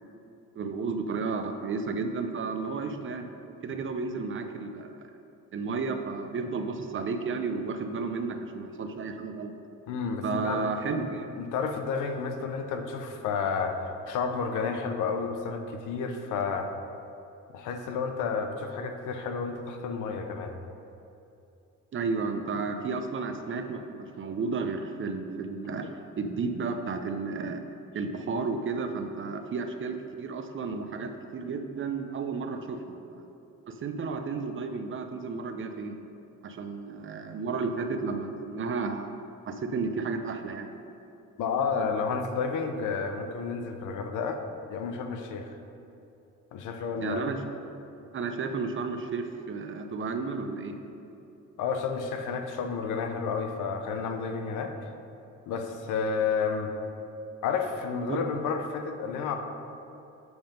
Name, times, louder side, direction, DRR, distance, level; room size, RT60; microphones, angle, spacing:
voice 1, 0.6-3.3 3.6-5.0 5.5-9.5 10.2-11.3 21.9-27.6 27.9-33.3 33.7-36.0 36.4-39.1 39.5-40.7 47.0-47.4 48.1-50.8 58.1-58.2, right 4 dB, 40° right, 6 dB, 0.6 m, -32 dB
voice 2, 9.9-11.1 11.4-16.7 17.5-20.6 41.4-44.4 44.7-45.5 46.5-47.2 51.6-54.7 55.5-56.7 57.4-59.3, left 5 dB, 80° left, 5 dB, 0.7 m, -31 dB
7.9 x 3.5 x 5.1 m, 2.8 s
cardioid pair, 90°, 30 cm